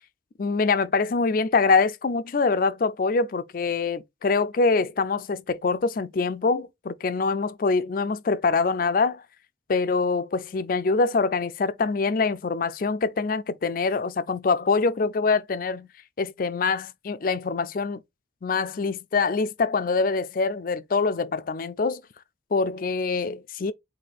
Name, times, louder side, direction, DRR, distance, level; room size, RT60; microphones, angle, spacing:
voice 1, 0.4-9.2 9.7-15.9 16.2-18.0 18.4-22.0 22.5-23.7, left 4 dB, 50° left, 0.4 m, -24 dB
4.2 x 2.7 x 4.1 m
head